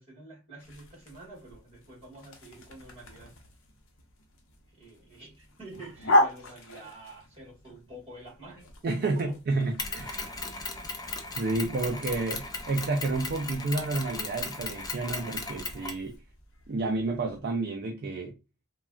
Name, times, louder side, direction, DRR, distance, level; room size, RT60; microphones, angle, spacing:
voice 1, 0.0-3.3 4.7-9.4 9.9-10.8, right 2 dB, 25° right, 1.6 m, -48 dB
sound 1, 0.6-17.4, left 1 dB, 65° left, 0.8 m, -36 dB
voice 2, 8.8-10.2 11.4-16.2 16.7-18.3, right 3 dB, 45° right, 0.4 m, -30 dB
Mechanisms, 9.8-16.1, left 3 dB, 20° left, 0.4 m, -37 dB
3.1 x 2.2 x 2.4 m
head